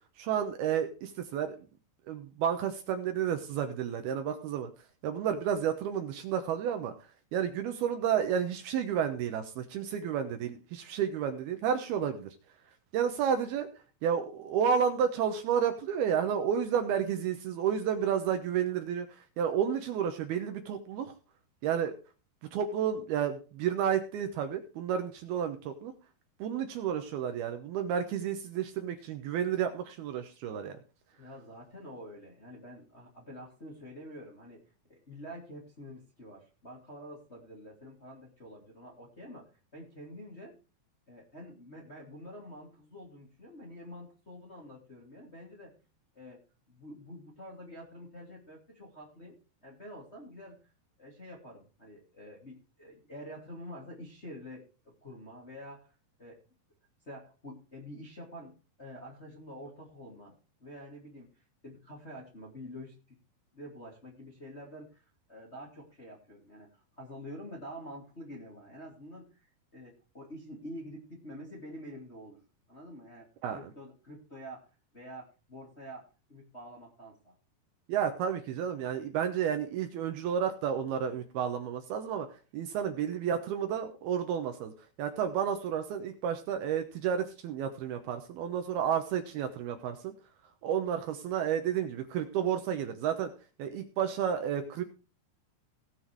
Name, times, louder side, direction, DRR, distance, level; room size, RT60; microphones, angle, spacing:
voice 1, 0.2-1.6 2.1-4.7 5.0-6.9 7.3-12.3 12.9-13.7 14.0-21.1 21.6-21.9 22.5-25.9 26.4-30.8 73.4-73.7 77.9-82.3 82.5-84.7 85.0-90.1 90.6-93.3 93.6-94.8, right 8 dB, 75° right, 6 dB, 2.7 m, -31 dB
voice 2, 31.2-34.6 34.9-40.6 41.1-45.7 46.1-46.4 46.7-49.4 49.6-50.6 51.0-55.9 56.2-56.4 57.1-60.3 60.6-61.3 61.6-63.2 63.5-66.7 67.0-72.4 72.7-73.3 73.5-74.7 74.9-77.3, equal, 20° left, -2 dB, 2.0 m, -47 dB
17.5 x 6.2 x 4.6 m, 0.33 s
omnidirectional pair, 5.1 m